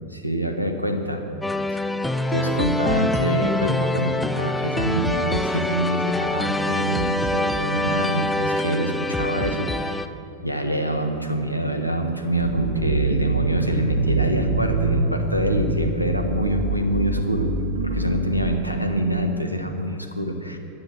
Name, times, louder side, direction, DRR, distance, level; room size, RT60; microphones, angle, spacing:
voice 1, 0.1-1.3 1.7-1.8 2.3-10.0 10.4-17.5 17.8-20.6, right 1 dB, 90° right, 5 dB, 1.3 m, -25 dB
sound 1, 1.4-10.1, left 2 dB, 5° left, 0.6 m, -25 dB
sound 2, 12.4-18.4, right 2 dB, 70° right, 2.1 m, -24 dB
14.5 x 10.5 x 7.4 m, 2.7 s
figure-of-eight pair, 90°, 0 cm